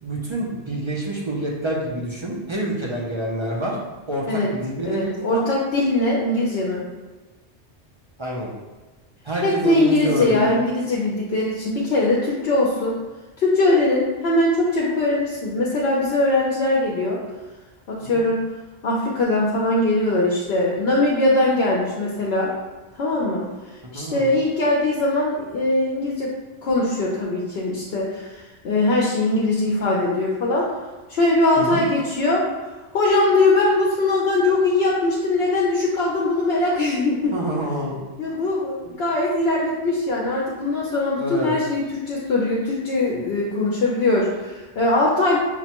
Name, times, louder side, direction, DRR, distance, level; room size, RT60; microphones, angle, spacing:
voice 1, 0.0-3.8 4.1-5.4 8.2-8.5 9.2-10.6 18.0-18.2 23.9-24.3 31.6-31.8 37.3-38.0 38.3-38.4 41.2-41.5, right 1 dB, 40° right, -4 dB, 0.4 m, -27 dB
voice 2, 4.8-6.8 9.4-13.0 13.4-17.2 17.9-18.4 18.8-22.5 22.9-23.5 23.9-26.3 26.6-30.7 31.1-32.4 32.9-37.3 38.2-45.4, left 2 dB, 65° left, -4 dB, 0.8 m, -21 dB
5.9 x 2.1 x 2.9 m, 1.3 s
omnidirectional pair, 1.2 m